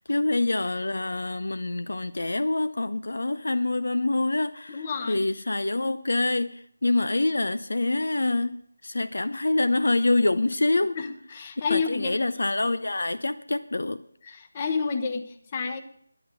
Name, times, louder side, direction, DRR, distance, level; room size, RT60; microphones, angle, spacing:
voice 1, 0.0-8.6 8.8-11.0 11.7-14.0, left 2 dB, 65° left, 0.6 m, -26 dB
voice 2, 4.7-5.2 11.0-12.2 14.2-15.8, left 5 dB, 25° left, 1.1 m, -30 dB
11.0 x 9.8 x 6.5 m
figure-of-eight pair, 165°, 0 cm